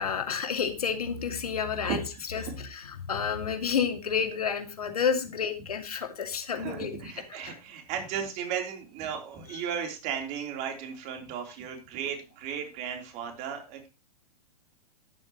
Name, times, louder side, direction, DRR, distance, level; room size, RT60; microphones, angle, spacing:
voice 1, 0.0-7.0 7.3-7.6 9.5-9.8, left 7 dB, 65° left, 6 dB, 2.4 m, -30 dB
voice 2, 6.5-13.9, right 8 dB, 35° right, 3 dB, 3.6 m, -35 dB
13.5 x 11.0 x 3.1 m, 0.28 s
figure-of-eight pair, 105°, 20 cm